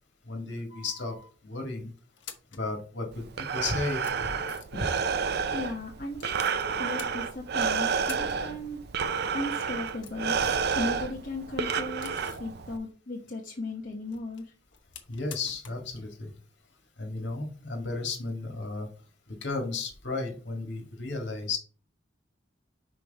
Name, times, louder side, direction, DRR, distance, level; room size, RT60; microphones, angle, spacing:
voice 1, 0.3-1.2 1.4-1.9 2.5-3.2 3.5-4.0 15.1-16.3 17.0-18.9 19.3-21.6, left 3 dB, 70° left, 3 dB, 1.9 m, -33 dB
sound 1, 0.7-1.3 2.0-2.7 3.4-3.5 3.8-4.9 6.2-6.6 7.0-7.6 7.9-8.4 8.7-8.8 9.6-10.7 11.1-12.5 13.9-15.9 16.1-16.2 18.0-18.1, left 8 dB, 85° left, 1.1 m, -48 dB
Breathing, 3.1-12.8, right 6 dB, 60° right, 0.5 m, -30 dB
voice 2, 5.5-8.8 9.3-10.4 10.7-12.1 12.4-14.4, left 2 dB, 50° left, -2 dB, 1.0 m, -36 dB
6.0 x 4.9 x 3.4 m, 0.38 s
head